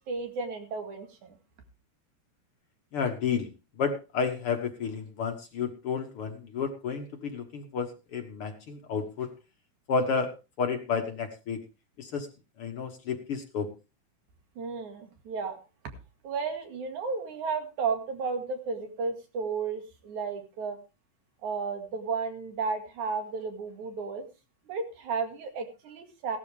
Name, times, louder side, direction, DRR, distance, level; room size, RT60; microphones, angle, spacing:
voice 1, 0.0-1.3 14.6-15.6 16.2-20.8 21.4-24.2 24.7-26.4, right 5 dB, 70° right, 5 dB, 3.5 m, -33 dB
voice 2, 2.9-3.5 3.8-9.3 9.9-10.3 10.6-11.6 12.0-12.3 12.6-13.7, left 5 dB, 55° left, 5 dB, 2.0 m, -31 dB
16.5 x 12.0 x 3.4 m, 0.29 s
omnidirectional pair, 3.5 m